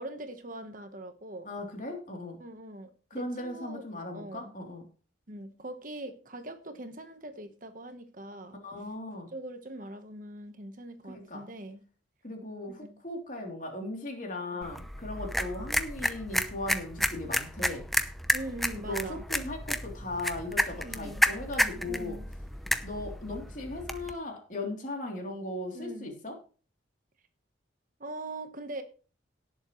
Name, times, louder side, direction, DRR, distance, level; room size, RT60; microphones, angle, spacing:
voice 1, 0.0-1.5 2.4-3.8 4.1-4.6 5.3-8.6 9.3-11.8 12.7-13.0 14.5-14.7 18.3-19.2 20.8-21.3 21.8-22.3 25.7-26.1 28.0-28.8, right 1 dB, 45° right, 1.2 m, -42 dB
voice 2, 1.4-2.4 3.1-4.9 8.6-9.3 11.1-11.5 12.2-17.8 18.7-22.2 22.8-26.4, left 2 dB, 40° left, 3.4 m, -38 dB
sound 1, 14.6-24.1, equal, ahead, 0.7 m, -31 dB
18.0 x 7.3 x 3.2 m
head